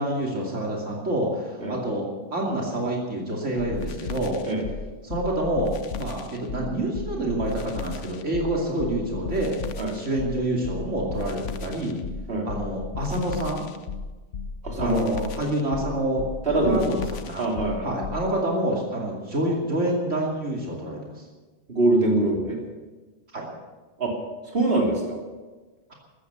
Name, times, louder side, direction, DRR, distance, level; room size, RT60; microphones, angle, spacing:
voice 1, 0.0-2.0 2.3-4.4 5.0-9.6 9.9-12.0 12.4-13.6 14.8-16.3 16.6-17.5 17.8-21.2 23.3-23.5 25.9-26.0, right 1 dB, 85° right, -2 dB, 3.0 m, -27 dB
sound 1, 3.6-18.3, left 5 dB, 90° left, 1.2 m, -35 dB
voice 2, 14.6-15.1 16.4-16.9 17.4-17.9 21.7-22.6 24.0-24.2 24.5-25.2, right 2 dB, 50° right, -1 dB, 3.6 m, -23 dB
15.0 x 14.0 x 6.8 m, 1.2 s
omnidirectional pair, 1.2 m